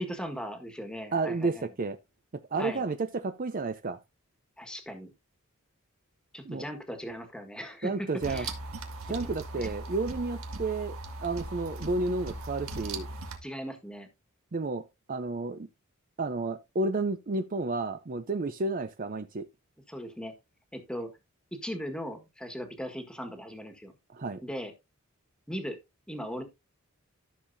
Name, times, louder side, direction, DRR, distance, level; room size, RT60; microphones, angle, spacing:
voice 1, 0.0-1.7 2.6-2.8 4.6-5.1 6.3-8.5 9.1-9.2 9.6-9.7 13.4-14.1 19.9-20.3 20.7-21.1 21.6-23.9 24.4-24.7 25.5-25.8 26.1-26.4, equal, 5° left, 1.5 m, -38 dB
voice 2, 1.1-2.0 2.5-4.0 6.5-6.6 7.8-8.5 9.1-11.0 11.2-13.1 14.5-14.8 15.1-15.7 16.2-19.5 24.1-24.4, right 3 dB, 40° right, 0.5 m, -31 dB
sound 1, 8.2-13.4, right 2 dB, 75° right, 1.7 m, -39 dB
13.5 x 6.4 x 2.7 m
head